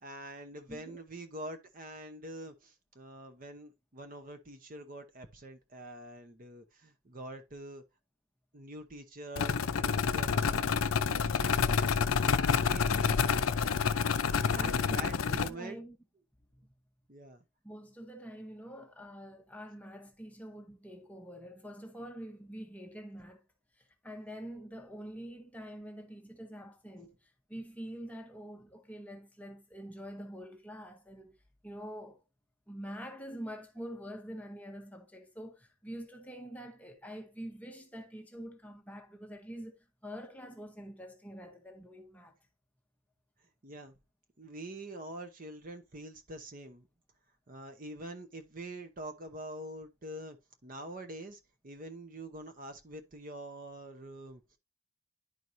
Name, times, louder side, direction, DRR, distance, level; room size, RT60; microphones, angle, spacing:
voice 1, 0.0-7.8 8.5-10.8 11.0-11.8 12.7-13.4 14.5-15.8 17.1-17.4 27.0-27.1 43.6-43.9 44.4-46.9 47.5-50.4 50.6-54.4, right 1 dB, 40° right, 0.8 m, -45 dB
voice 2, 0.7-1.0 12.8-13.4 14.5-16.0 17.6-23.4 23.8-31.4 31.6-32.2 32.7-42.4, equal, 5° left, 0.9 m, -46 dB
sound 1, 9.4-15.5, left 6 dB, 70° left, 0.5 m, -28 dB
10.5 x 4.6 x 2.6 m
head